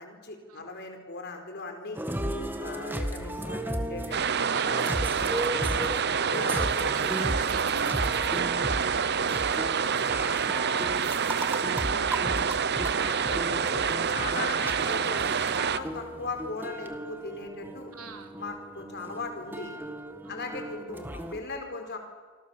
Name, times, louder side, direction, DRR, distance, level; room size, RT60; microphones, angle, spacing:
voice 1, 0.0-2.0 2.6-4.2 4.4-4.7 5.6-5.7 6.3-7.3 13.0-15.2 15.5-17.9 18.4-19.8 20.3-22.0, left 3 dB, 50° left, 5 dB, 4.7 m, -38 dB
sound 1, 1.9-21.4, right 1 dB, 10° right, 1.7 m, -35 dB
sound 2, 4.1-15.8, right 6 dB, 50° right, 0.9 m, -27 dB
voice 2, 4.3-5.8 6.9-12.7 17.9-18.3 20.2-20.7 21.8-22.0, right 4 dB, 85° right, 5 dB, 3.0 m, -45 dB
27.5 x 25.5 x 7.3 m, 1.5 s
head